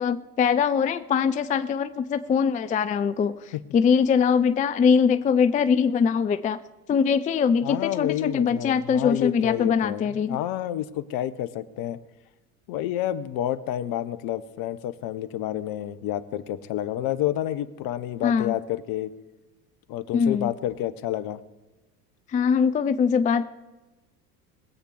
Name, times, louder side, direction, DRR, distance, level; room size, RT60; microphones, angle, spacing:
voice 1, 0.0-6.6 6.9-10.4 18.2-18.6 20.1-20.5 22.3-23.4, left 6 dB, 15° left, 12 dB, 0.4 m, -22 dB
voice 2, 7.6-12.0 12.7-19.1 19.9-21.4, left 12 dB, 50° left, 15 dB, 0.9 m, -29 dB
21.0 x 8.4 x 4.7 m, 1.1 s
hypercardioid pair, 75°, 46 cm